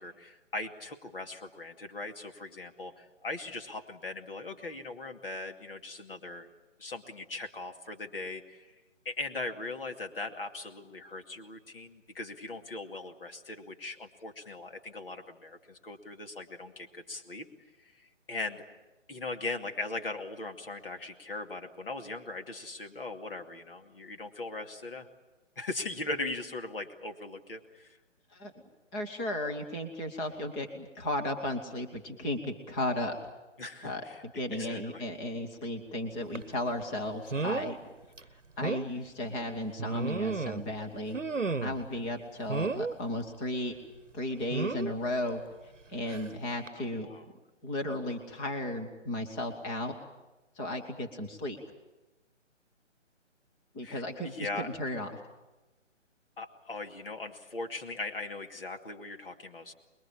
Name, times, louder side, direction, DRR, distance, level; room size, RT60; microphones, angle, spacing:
voice 1, 0.0-6.5 6.8-8.7 9.0-17.5 17.8-18.6 19.1-25.1 25.6-28.0 33.6-34.2 34.5-35.0 46.7-47.2 53.8-54.8 56.4-59.7, left 2 dB, 50° left, 5 dB, 2.5 m, -39 dB
voice 2, 28.9-33.2 33.8-37.8 38.3-41.2 41.6-43.7 44.1-45.4 45.9-47.1 47.6-49.9 50.6-51.6 53.7-55.1, left 1 dB, 5° left, 3 dB, 0.9 m, -35 dB
sound 1, 36.3-36.5 37.3-37.8 38.2-38.3 38.6-38.9 39.8-40.7 41.1-41.9 42.5-42.9 44.5-44.9 46.1-46.3 46.7-46.8, right 4 dB, 80° right, 1.0 m, -32 dB
26.0 x 22.0 x 8.6 m, 1.1 s
figure-of-eight pair, 145°, 37 cm